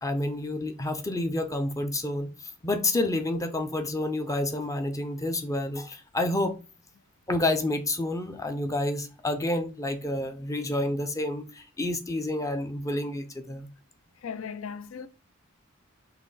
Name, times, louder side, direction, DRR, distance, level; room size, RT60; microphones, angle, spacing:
voice 1, 0.0-6.5 7.3-13.7, left 1 dB, 15° left, 0.5 m, -29 dB
voice 2, 14.2-15.1, left 6 dB, 75° left, 0.4 m, -37 dB
4.0 x 2.9 x 4.0 m
head